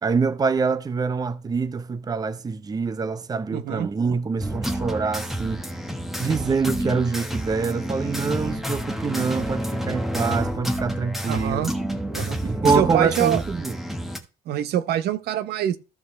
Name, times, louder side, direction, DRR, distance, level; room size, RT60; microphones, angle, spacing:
voice 1, 0.0-5.6 6.2-11.7 12.4-13.8, right 5 dB, 20° right, 0.6 m, -25 dB
voice 2, 3.5-3.9 11.3-11.7 12.1-12.4 12.7-13.4 14.5-15.8, right 11 dB, 70° right, 0.9 m, -24 dB
sound 1, 4.4-14.2, equal, ahead, 1.2 m, -29 dB
14.0 x 5.0 x 3.2 m
cardioid pair, 110°, 17 cm